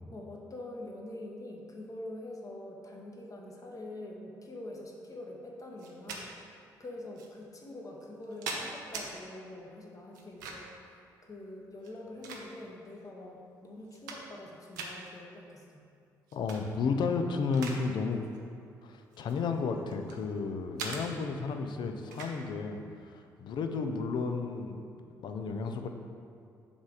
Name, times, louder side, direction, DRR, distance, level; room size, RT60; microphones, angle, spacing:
voice 1, 0.1-15.8, left 1 dB, 35° left, 0 dB, 1.2 m, -45 dB
sound 1, 5.8-6.2 7.2-7.3 8.0-9.1 10.1-10.8 11.8-12.8 13.4-13.5 13.8-14.5 14.7-14.9 16.3-16.6 17.0-17.8 18.1-18.4 19.1-20.2 20.8-21.0 22.1-22.4, right 4 dB, 75° right, 0.6 m, -41 dB
voice 2, 16.3-18.2 18.8-24.9 25.2-25.9, left 4 dB, 50° left, 6 dB, 0.5 m, -33 dB
7.2 x 3.4 x 4.9 m, 2.4 s
figure-of-eight pair, 45°, 10 cm